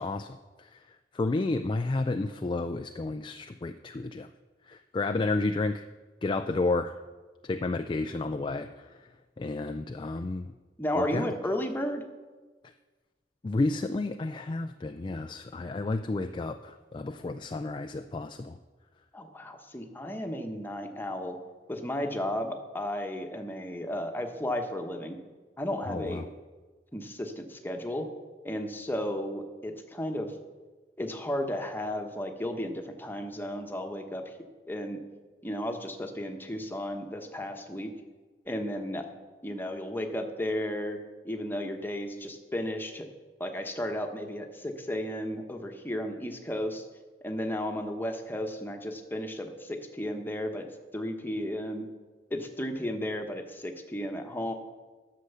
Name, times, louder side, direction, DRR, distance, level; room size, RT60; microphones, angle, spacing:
voice 1, 0.0-4.3 4.6-5.9 6.2-7.0 7.4-9.1 9.4-10.5 10.9-11.3 12.6-12.7 13.4-18.6 25.8-26.3, left 2 dB, 25° left, 8 dB, 0.3 m, -31 dB
voice 2, 10.8-12.1 19.1-21.4 21.7-25.2 25.6-26.3 26.9-28.1 28.4-30.3 31.0-34.2 34.7-35.0 35.4-37.9 38.5-39.1 39.4-41.0 41.2-43.1 43.4-46.8 47.2-50.7 50.9-51.9 52.3-54.5, left 1 dB, 10° left, 4 dB, 1.1 m, -34 dB
11.5 x 6.8 x 6.8 m, 1.3 s
head